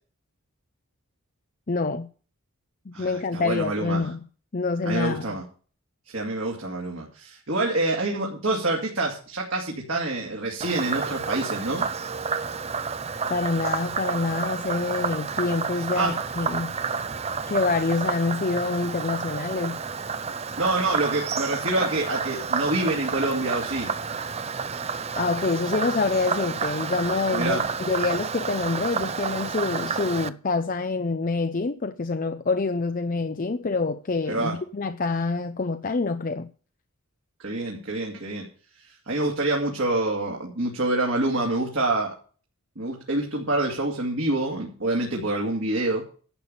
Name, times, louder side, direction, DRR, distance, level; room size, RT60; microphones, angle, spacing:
voice 1, 1.7-2.1 2.9-4.2 4.5-5.4 13.3-16.7 17.5-19.8 25.2-36.5, left 3 dB, 40° left, 0.5 m, -26 dB
voice 2, 2.9-4.1 4.8-5.4 6.1-11.9 15.9-16.2 20.6-23.9 27.3-27.6 34.3-34.6 37.4-38.5 38.7-42.1 42.8-46.0, right 2 dB, 60° right, 2.3 m, -27 dB
Frog, 10.6-30.3, right 5 dB, 30° right, 0.5 m, -30 dB
11.5 x 6.9 x 7.0 m
head